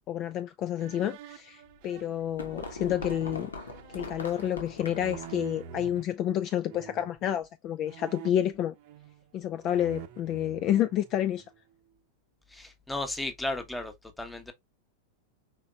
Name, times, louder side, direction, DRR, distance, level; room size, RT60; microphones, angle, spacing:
voice 1, 0.1-3.5 3.9-8.7 9.3-11.4, left 11 dB, 35° left, 0.4 m, -29 dB
sound 1, 0.8-6.0 6.7-7.2 7.8-9.3 9.6-11.6, right 8 dB, 45° right, 0.7 m, -46 dB
sound 2, 1.7-5.5, left 3 dB, 70° left, 1.1 m, -40 dB
voice 2, 12.5-14.5, left 2 dB, 5° left, 1.0 m, -35 dB
5.1 x 3.9 x 2.3 m
figure-of-eight pair, 90°, 0 cm